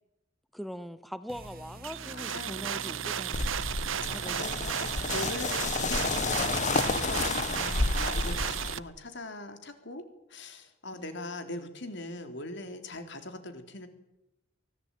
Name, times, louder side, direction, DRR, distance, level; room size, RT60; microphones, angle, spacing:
voice 1, 0.5-3.5 4.1-5.0 7.5-8.5 10.9-11.2, equal, ahead, 13 dB, 0.8 m, -43 dB
sound 1, 1.3-7.4, right 1 dB, 50° right, 2.1 m, -48 dB
sound 2, 1.8-8.8, right 9 dB, 85° right, 0.8 m, -34 dB
voice 2, 2.1-3.0 3.8-4.3 5.0-10.0 10.3-13.9, left 2 dB, 65° left, 7 dB, 3.8 m, -41 dB
sound 3, 3.3-8.7, left 3 dB, 40° left, 1.2 m, -30 dB
24.0 x 17.0 x 9.1 m, 0.87 s
head